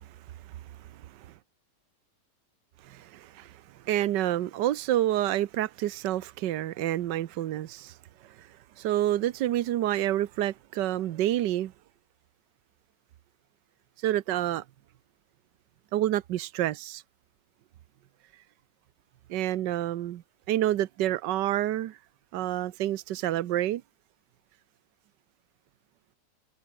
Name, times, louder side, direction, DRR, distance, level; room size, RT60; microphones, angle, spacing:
voice 1, 0.4-1.3 2.8-8.0 8.2-11.7 14.0-14.6 15.9-17.0 19.3-20.2 20.5-22.0 22.3-23.8, right 13 dB, 85° right, 1.4 m, -29 dB
omnidirectional pair, 1.9 m